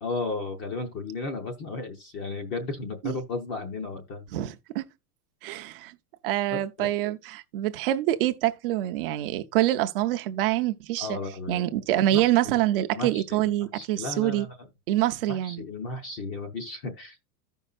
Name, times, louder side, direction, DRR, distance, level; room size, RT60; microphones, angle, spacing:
voice 1, 0.0-4.2 6.5-6.9 11.0-11.6 12.1-12.2 12.9-13.5 13.7-14.5 15.3-17.2, left 3 dB, 25° left, 0.7 m, -34 dB
voice 2, 4.3-4.9 5.4-6.0 6.2-11.2 11.5-14.5 14.9-15.6, right 14 dB, 40° right, 0.5 m, -26 dB
14.5 x 5.4 x 2.3 m
supercardioid pair, 175°, 47 cm